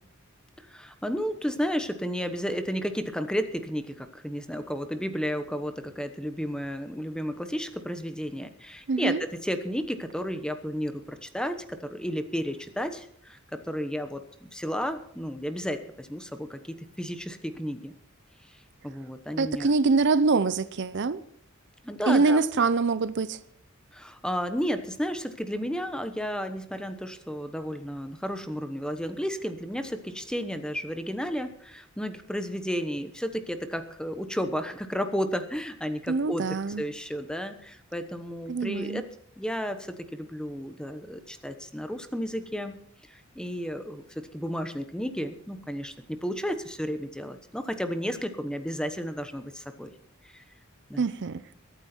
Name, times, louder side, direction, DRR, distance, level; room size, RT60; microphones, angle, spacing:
voice 1, 0.6-17.9 18.8-19.7 21.8-22.4 23.9-36.5 36.8-39.0 39.4-42.7 43.1-49.9 50.3-50.4 50.9-51.1, equal, 5° left, 1.1 m, -32 dB
voice 2, 8.9-9.2 19.4-21.2 22.1-23.4 36.1-36.8 38.5-39.0 51.0-51.4, right 4 dB, 55° right, 0.6 m, -24 dB
22.5 x 9.2 x 4.4 m
head